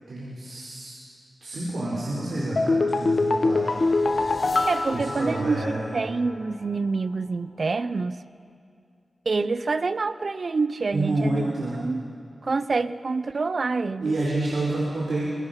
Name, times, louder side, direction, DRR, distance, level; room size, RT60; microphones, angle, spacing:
voice 1, 0.1-0.9 1.4-3.7 4.1-4.6 4.9-5.9 10.9-11.8 14.0-15.2, right 2 dB, 85° right, -6 dB, 4.2 m, -29 dB
sound 1, 2.6-6.0 6.3-6.4, left 3 dB, 60° left, 1.1 m, -24 dB
voice 2, 4.7-8.2 9.3-12.0 12.4-14.1, right 4 dB, 60° right, 14 dB, 0.7 m, -27 dB
26.0 x 21.0 x 5.8 m, 2.4 s
cardioid pair, 50°, 0 cm